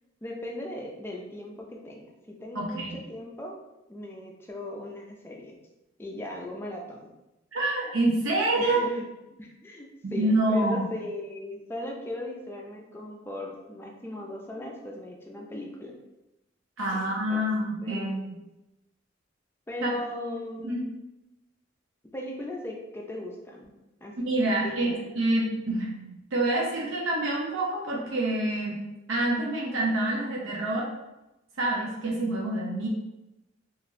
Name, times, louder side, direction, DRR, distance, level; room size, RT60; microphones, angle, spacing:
voice 1, 0.2-3.5 3.9-5.6 6.0-7.1 8.6-9.1 9.4-16.0 16.9-17.5 17.8-18.4 19.7-20.9 22.1-23.7 24.0-24.1 24.4-25.1, left 1 dB, 10° left, 0 dB, 0.4 m, -38 dB
voice 2, 2.5-3.0 7.5-8.8 10.0-10.8 16.8-18.4 19.8-19.9 20.6-20.8 24.3-28.8 29.1-30.9 31.6-32.9, right 1 dB, 85° right, -3 dB, 0.6 m, -27 dB
3.0 x 2.4 x 2.5 m, 0.97 s
head